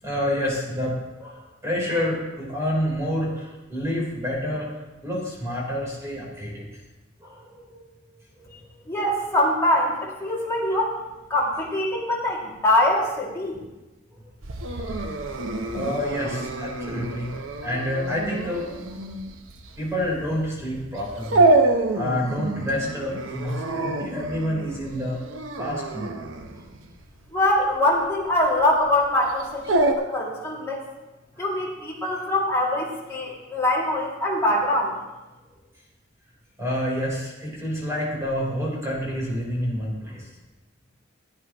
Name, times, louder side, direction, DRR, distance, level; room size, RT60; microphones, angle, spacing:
voice 1, 0.0-6.7 7.2-8.9 14.1-14.2 14.7-15.0 15.4-18.7 19.8-25.2 25.6-26.2 31.4-31.5 36.6-40.3, left 1 dB, 15° right, -4 dB, 3.7 m, -29 dB
voice 2, 8.9-11.0 11.3-13.6 27.3-30.8 31.4-35.0, left 1 dB, 15° left, -5 dB, 2.3 m, -23 dB
Dog, 14.4-29.9, right 2 dB, 90° right, 0.8 m, -27 dB
16.0 x 9.4 x 3.0 m, 1.1 s
head